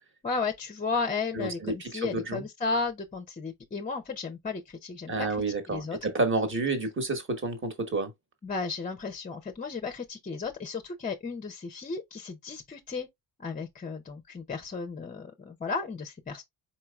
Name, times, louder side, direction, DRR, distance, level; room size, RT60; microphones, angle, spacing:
voice 1, 0.2-5.1 5.7-6.0 8.4-13.1 13.4-16.4, left 4 dB, 20° left, 0.5 m, -34 dB
voice 2, 1.3-2.4 5.1-8.1, right 3 dB, 30° right, 1.2 m, -30 dB
4.5 x 4.3 x 2.3 m
wide cardioid pair, 155°, 40 cm